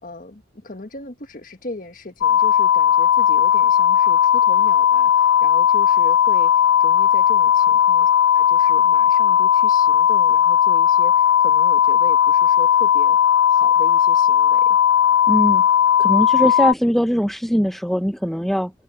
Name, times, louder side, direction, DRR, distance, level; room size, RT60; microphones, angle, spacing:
voice 1, 0.0-6.5 6.8-8.1 8.3-13.2 13.5-14.8, left 1 dB, 45° left, 1.5 m, -37 dB
sound 1, 2.2-16.7, left 9 dB, 70° left, 0.3 m, -16 dB
voice 2, 15.3-15.6 16.0-18.7, equal, ahead, 0.5 m, -21 dB
head